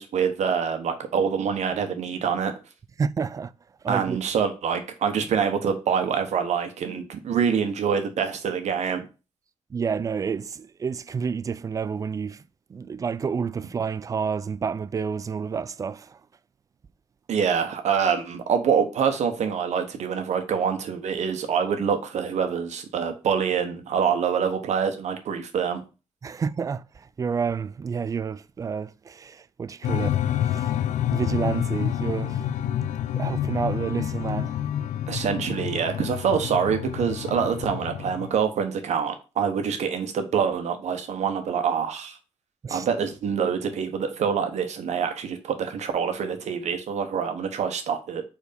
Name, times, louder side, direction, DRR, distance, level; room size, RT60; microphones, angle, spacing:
voice 1, 0.0-2.5 3.9-9.1 17.3-25.8 35.1-42.2 42.7-48.2, right 7 dB, 65° right, 1.2 m, -25 dB
voice 2, 3.0-3.5 3.8-4.2 9.7-12.4 12.7-16.2 26.2-30.7 31.1-32.4 33.1-34.6 42.6-42.9, right 6 dB, 25° right, 0.3 m, -29 dB
sound 1, 29.8-38.3, left 11 dB, 75° left, 0.4 m, -28 dB
4.6 x 4.3 x 5.2 m
cardioid pair, 125°, 13 cm